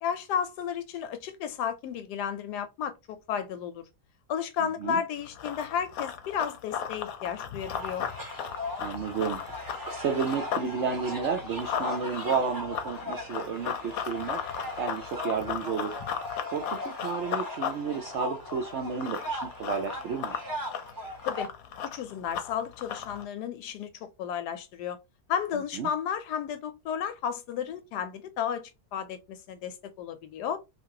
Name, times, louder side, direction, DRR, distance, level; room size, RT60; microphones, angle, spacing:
voice 1, 0.0-3.8 4.3-8.1 21.3-21.5 21.8-25.0 25.3-30.6, left 8 dB, 90° left, 1.2 m, -33 dB
voice 2, 4.6-5.0 8.8-9.4 9.9-14.4 14.8-15.9 16.5-20.4 25.8-25.9, right 6 dB, 75° right, 0.6 m, -32 dB
Run, 5.2-10.7 11.0-23.2, left 8 dB, 70° left, 1.0 m, -36 dB
sound 1, 7.6-21.4, left 1 dB, 25° right, 0.4 m, -39 dB
2.8 x 2.5 x 2.7 m
omnidirectional pair, 1.7 m